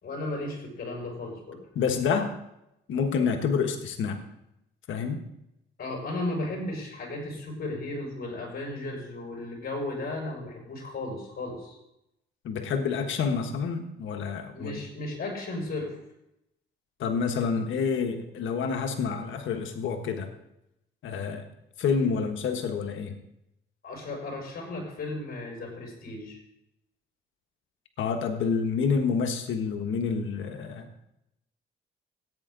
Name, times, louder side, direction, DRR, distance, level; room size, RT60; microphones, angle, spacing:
voice 1, 0.0-1.6 5.8-11.8 14.5-15.9 23.8-26.4, left 2 dB, 50° left, 0 dB, 5.7 m, -35 dB
voice 2, 1.7-2.3 2.9-4.2 4.9-5.2 12.4-14.8 17.0-20.3 21.0-21.5 21.8-23.1 28.0-31.0, left 5 dB, 75° left, 5 dB, 1.4 m, -28 dB
15.5 x 9.1 x 3.9 m, 0.85 s
cardioid pair, 90°, 20 cm